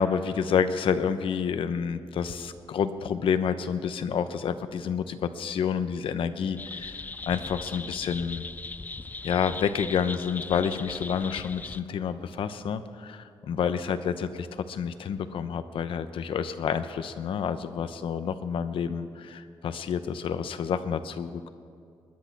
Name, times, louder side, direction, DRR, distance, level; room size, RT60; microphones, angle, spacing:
voice 1, 0.0-8.4 9.2-21.5, left 7 dB, 75° left, 11 dB, 0.8 m, -29 dB
sound 1, 6.6-11.8, left 3 dB, 20° left, 0.3 m, -39 dB
21.0 x 10.5 x 5.9 m, 2.4 s
wide cardioid pair, 155°, 9 cm